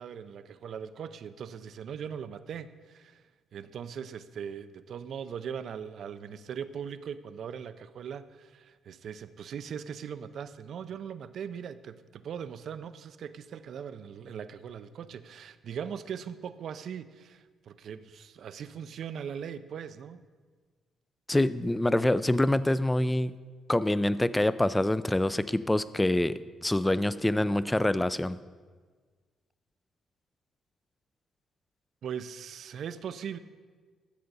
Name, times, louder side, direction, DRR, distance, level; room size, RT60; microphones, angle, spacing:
voice 1, 0.0-3.2 3.5-20.2 32.0-33.4, right 7 dB, 65° right, 13 dB, 0.5 m, -40 dB
voice 2, 21.3-23.3 23.7-28.4, left 1 dB, 10° left, 16 dB, 0.4 m, -26 dB
13.0 x 7.7 x 4.0 m, 1.5 s
cardioid pair, 90°, 0 cm